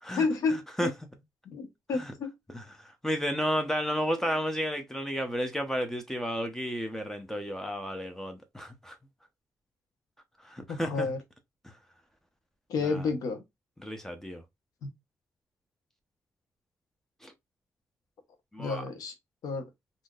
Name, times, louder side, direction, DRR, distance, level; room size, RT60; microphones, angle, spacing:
voice 1, 0.1-0.9 1.4-2.3 4.2-4.4 10.7-11.2 12.7-13.4 14.8-14.9 18.6-19.1 19.4-19.7, left 4 dB, 85° left, 0.9 m, -31 dB
voice 2, 2.8-9.0 10.4-11.1 12.8-13.0 13.8-14.4 17.2-17.3 18.5-18.8, equal, 5° left, 0.6 m, -32 dB
3.6 x 2.6 x 2.3 m
cardioid pair, 95°, 6 cm